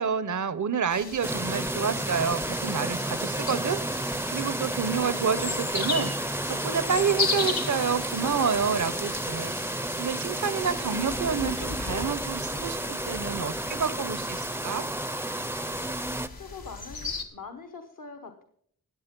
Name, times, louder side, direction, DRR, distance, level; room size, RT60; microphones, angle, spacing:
voice 1, 0.0-9.6 10.0-14.8, right 6 dB, 55° right, 15 dB, 0.8 m, -29 dB
sound 1, 0.9-17.2, left 4 dB, 85° left, 1.7 m, -37 dB
sound 2, 1.2-16.3, right 1 dB, 5° right, 0.6 m, -31 dB
voice 2, 16.4-18.4, left 5 dB, 65° left, 7 dB, 1.2 m, -43 dB
15.0 x 8.9 x 5.3 m, 0.65 s
wide cardioid pair, 50°, 35 cm